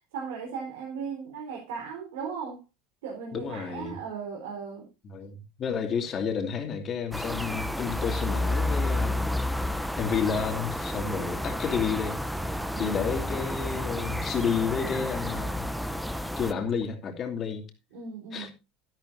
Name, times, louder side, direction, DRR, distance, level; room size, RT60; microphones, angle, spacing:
voice 1, 0.1-2.6 3.0-4.9 12.7-13.2 17.9-18.5, right 6 dB, 90° right, 4.1 m, -37 dB
voice 2, 3.3-4.0 5.0-9.2 10.0-12.2 12.8-15.7 16.4-17.7 18.3-18.5, left 6 dB, 35° left, 2.7 m, -31 dB
sound 1, 7.1-16.5, left 1 dB, ahead, 0.8 m, -31 dB
sound 2, 10.6-16.9, right 3 dB, 20° right, 5.0 m, -51 dB
12.0 x 11.5 x 2.7 m
supercardioid pair, 120°, 0 cm